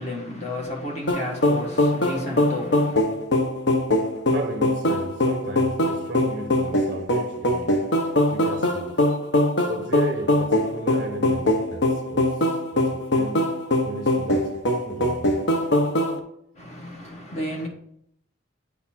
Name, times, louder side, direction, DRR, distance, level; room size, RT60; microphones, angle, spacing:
voice 1, 0.0-3.0 16.5-17.7, left 1 dB, 35° left, 1.4 m, -32 dB
sound 1, 1.1-16.2, left 1 dB, 65° left, 0.9 m, -22 dB
voice 2, 4.0-7.9 8.3-9.2 9.7-13.6 13.8-15.5, right 1 dB, 40° right, 0.5 m, -35 dB
8.5 x 4.1 x 4.3 m
head